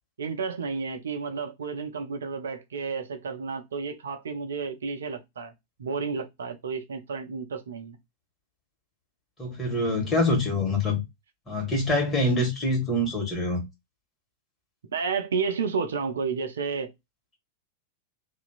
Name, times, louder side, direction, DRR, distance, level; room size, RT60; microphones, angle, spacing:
voice 1, 0.2-5.5 5.8-8.0 14.9-16.9, right 5 dB, 65° right, 0.4 m, -31 dB
voice 2, 9.4-11.0 11.5-13.6, left 1 dB, 20° left, 1.5 m, -25 dB
2.8 x 2.4 x 2.3 m
figure-of-eight pair, 90°, 0 cm